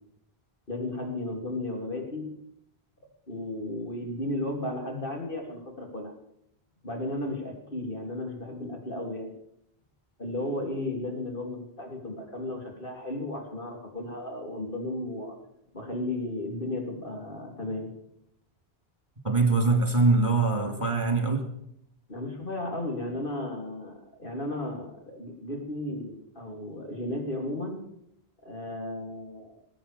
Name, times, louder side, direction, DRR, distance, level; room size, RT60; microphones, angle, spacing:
voice 1, 0.7-2.3 3.3-6.1 6.8-9.3 10.2-15.4 15.7-17.9 22.1-27.8 28.4-29.6, left 1 dB, 55° left, 1 dB, 3.8 m, -34 dB
voice 2, 19.2-21.5, right 3 dB, 30° right, 5 dB, 3.1 m, -23 dB
20.0 x 8.9 x 7.1 m, 0.76 s
omnidirectional pair, 1.1 m